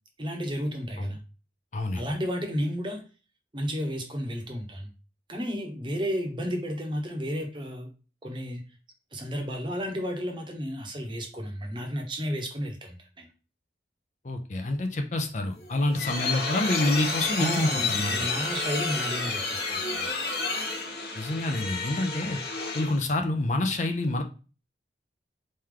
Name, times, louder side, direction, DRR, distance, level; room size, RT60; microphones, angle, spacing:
voice 1, 0.2-1.2 1.9-3.0 3.5-4.9 5.3-7.9 8.2-8.6 9.1-13.3 17.4-20.1, equal, 25° right, 3 dB, 0.9 m, -32 dB
voice 2, 1.7-2.0 14.2-18.3 21.1-22.4 22.7-24.2, left 2 dB, 40° left, 5 dB, 0.5 m, -27 dB
sound 1, 15.5-23.1, left 3 dB, 65° left, 1.2 m, -31 dB
4.4 x 3.2 x 3.7 m, 0.34 s
head